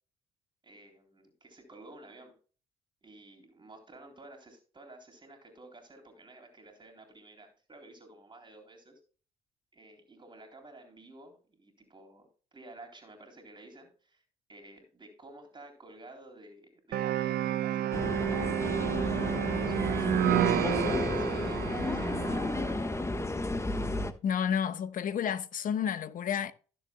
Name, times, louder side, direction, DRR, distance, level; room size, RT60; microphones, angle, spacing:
voice 1, 0.6-2.3 3.0-9.0 9.7-14.2 14.5-18.4 19.0-20.8 21.1-22.6, right 2 dB, 30° right, 3.7 m, -52 dB
sound 1, 16.9-22.9, right 12 dB, 65° right, 0.8 m, -30 dB
sound 2, 17.9-24.1, left 2 dB, 15° left, 1.2 m, -32 dB
voice 2, 24.2-26.5, left 8 dB, 55° left, 1.1 m, -30 dB
15.5 x 7.3 x 2.2 m
hypercardioid pair, 55°, 17 cm